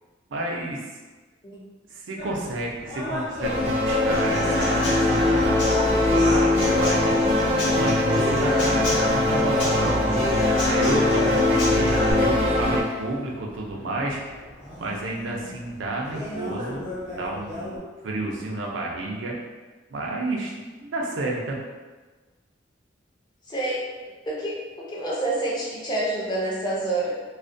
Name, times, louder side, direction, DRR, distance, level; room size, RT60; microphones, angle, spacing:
voice 1, 0.3-0.9 1.9-5.6 6.1-7.1 7.7-10.3 10.7-14.2 14.8-19.4 19.9-21.6, right 2 dB, 85° right, -1 dB, 0.4 m, -31 dB
sound 1, 2.2-17.8, left 1 dB, 40° left, 0.9 m, -37 dB
sound 2, 3.4-12.8, left 2 dB, 30° right, 0.5 m, -21 dB
Human voice / Acoustic guitar / Drum, 4.1-12.1, left 1 dB, 75° left, 0.6 m, -31 dB
voice 2, 23.5-23.8 24.2-27.1, right 2 dB, 25° left, -5 dB, 0.5 m, -28 dB
2.3 x 2.1 x 2.5 m, 1.3 s
head